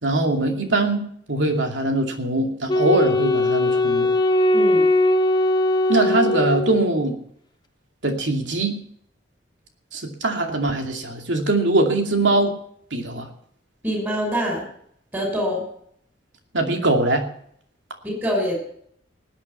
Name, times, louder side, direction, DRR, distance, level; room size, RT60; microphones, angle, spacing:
voice 1, 0.0-4.1 5.9-7.2 8.0-8.8 9.9-12.5 12.9-13.3 16.5-17.3, right 2 dB, 85° right, 3 dB, 2.6 m, -22 dB
Wind instrument woodwind instrument, 2.7-7.1, left 1 dB, 25° left, 0.9 m, -20 dB
voice 2, 4.5-4.9 13.8-14.6 15.1-15.6 18.0-18.6, equal, 10° right, 0 dB, 6.1 m, -24 dB
19.5 x 8.8 x 5.8 m, 0.66 s
head